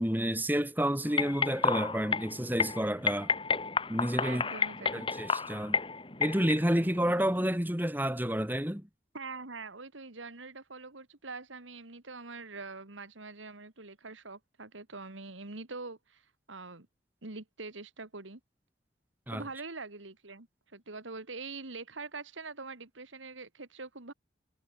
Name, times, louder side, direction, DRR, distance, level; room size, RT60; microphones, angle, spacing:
voice 1, 0.0-3.3 3.9-4.4 4.9-5.8 6.2-8.9 19.3-19.4, equal, 10° right, 2.6 m, -30 dB
sound 1, 1.1-7.6, left 5 dB, 25° left, 2.3 m, -32 dB
voice 2, 4.2-5.0 9.1-16.2 16.5-16.9 17.2-18.4 19.3-24.1, right 3 dB, 90° right, 2.3 m, -44 dB
head